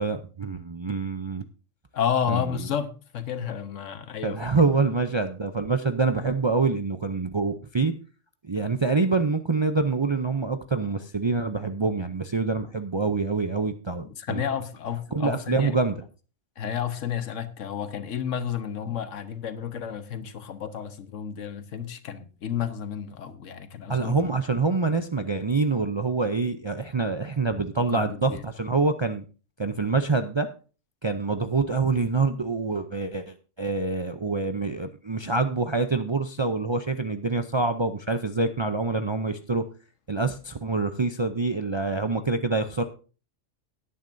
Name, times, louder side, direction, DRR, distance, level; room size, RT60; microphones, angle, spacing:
voice 1, 0.0-1.4 2.3-2.5 4.2-7.9 8.4-14.4 15.1-16.0 23.9-29.2 29.6-30.5 31.0-39.6 40.1-42.8, right 3 dB, 40° right, 0.4 m, -26 dB
voice 2, 1.9-4.4 14.2-15.8 16.6-24.1 27.9-28.4, left 8 dB, 85° left, 1.3 m, -31 dB
17.0 x 9.3 x 2.6 m
omnidirectional pair, 1.3 m